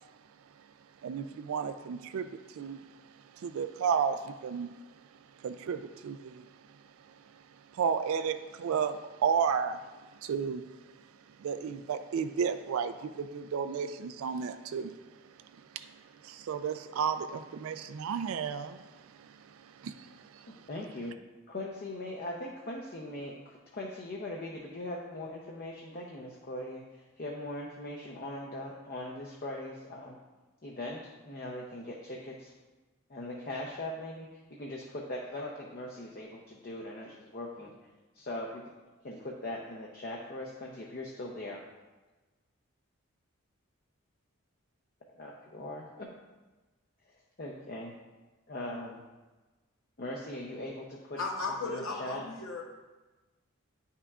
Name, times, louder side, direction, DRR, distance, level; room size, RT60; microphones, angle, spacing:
voice 1, 1.0-2.8 3.4-4.7 5.4-6.5 7.7-9.8 10.2-10.6 11.4-14.9 15.7-15.9 16.2-19.3 19.8-20.5, right 6 dB, 80° right, 10 dB, 0.3 m, -33 dB
voice 2, 20.7-21.1 21.5-30.2 30.6-32.5 33.1-37.7 38.1-38.6 39.0-41.6 45.1-46.1 47.4-47.9 48.5-49.0 50.0-51.2 51.6-52.2, left 1 dB, 45° left, -2 dB, 0.6 m, -40 dB
voice 3, 51.2-52.6, left 3 dB, 75° left, 0 dB, 0.8 m, -35 dB
9.6 x 5.6 x 2.4 m, 1.2 s
head